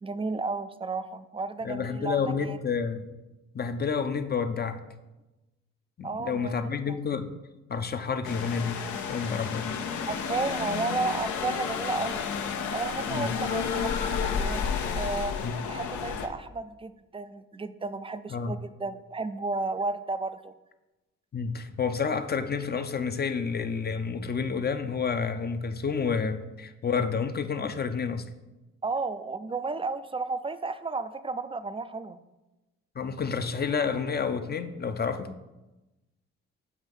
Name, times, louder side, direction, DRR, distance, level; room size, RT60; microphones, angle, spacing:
voice 1, 0.0-2.6 6.0-7.0 10.1-12.3 12.7-14.6 14.9-15.4 15.7-20.5 28.8-32.2, right 3 dB, 20° right, 12 dB, 0.4 m, -33 dB
voice 2, 1.6-3.1 3.5-4.8 6.0-7.3 7.7-8.8 9.1-9.8 13.1-13.3 15.4-15.6 18.3-18.6 21.3-28.2 33.0-35.4, left 5 dB, 35° left, 9 dB, 0.6 m, -29 dB
sound 1, 8.2-16.3, left 6 dB, 75° left, 0.7 m, -31 dB
7.4 x 3.0 x 5.3 m, 1.0 s
supercardioid pair, 55°, 29 cm